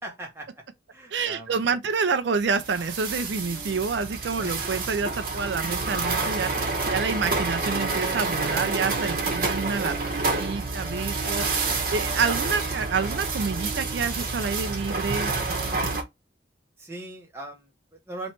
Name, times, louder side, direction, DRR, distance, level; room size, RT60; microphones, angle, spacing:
voice 1, 0.0-0.6 0.9-1.6 4.4-4.6 11.6-11.9 16.8-18.3, right 2 dB, 15° right, 1.1 m, -40 dB
voice 2, 1.1-15.3, right 5 dB, 75° right, 0.5 m, -28 dB
sound 1, 2.6-16.0, right 3 dB, 50° right, 1.0 m, -28 dB
3.1 x 3.1 x 4.3 m
head